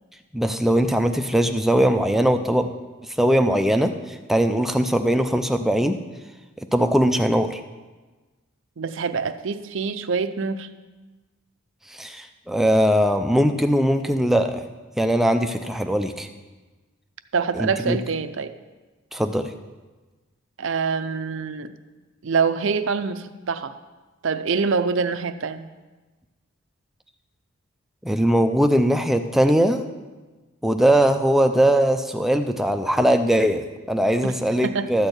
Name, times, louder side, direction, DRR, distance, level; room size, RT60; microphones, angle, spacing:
voice 1, 0.3-2.7 3.1-6.0 6.6-7.6 11.9-14.6 15.0-16.3 17.6-18.0 19.1-19.5 28.0-29.8 30.6-35.1, equal, ahead, 6 dB, 0.4 m, -20 dB
voice 2, 8.8-10.7 17.3-18.5 20.6-21.7 22.2-23.7 24.2-25.7 34.2-34.3 34.6-34.9, right 5 dB, 60° right, 11 dB, 0.5 m, -25 dB
13.0 x 4.4 x 8.0 m, 1.3 s
head